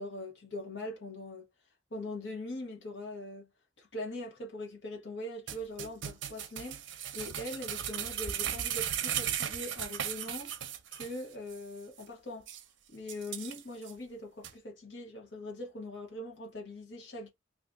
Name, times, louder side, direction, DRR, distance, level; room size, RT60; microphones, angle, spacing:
voice 1, 0.0-1.5 1.9-3.5 3.8-10.6 10.9-12.5 12.9-17.3, left 1 dB, 80° left, 1.3 m, -42 dB
sound 1, 5.5-11.2 11.5-11.6 12.0-12.1 12.5-12.6 13.1-13.9 14.4-14.5, right 10 dB, 85° right, 0.6 m, -36 dB
2.8 x 2.5 x 3.5 m
head